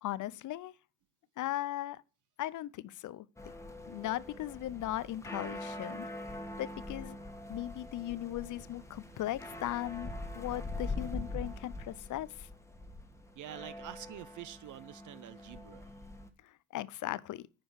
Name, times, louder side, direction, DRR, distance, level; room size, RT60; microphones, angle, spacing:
voice 1, 0.0-0.7 1.4-2.0 2.4-3.3 3.9-6.1 6.6-7.2 7.5-12.5 16.7-17.4, left 14 dB, 40° left, 0.6 m, -38 dB
sound 1, 3.4-16.3, left 2 dB, 5° left, 1.6 m, -43 dB
voice 2, 13.4-15.9, right 13 dB, 40° right, 0.6 m, -47 dB
9.7 x 5.3 x 6.4 m
hypercardioid pair, 80°, 47 cm